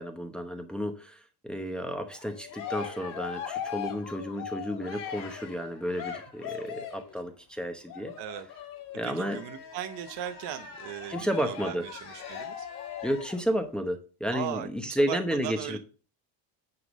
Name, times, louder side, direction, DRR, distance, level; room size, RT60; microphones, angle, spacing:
voice 1, 0.0-8.1 8.9-9.4 11.1-11.9 13.0-15.8, equal, ahead, 5 dB, 0.9 m, -32 dB
Cheering, 2.1-7.1 7.9-13.4, left 9 dB, 50° left, 3.1 m, -40 dB
voice 2, 9.0-12.7 14.3-15.8, right 11 dB, 70° right, 9 dB, 1.0 m, -38 dB
9.7 x 3.7 x 6.1 m, 0.36 s
cardioid pair, 140°, 43 cm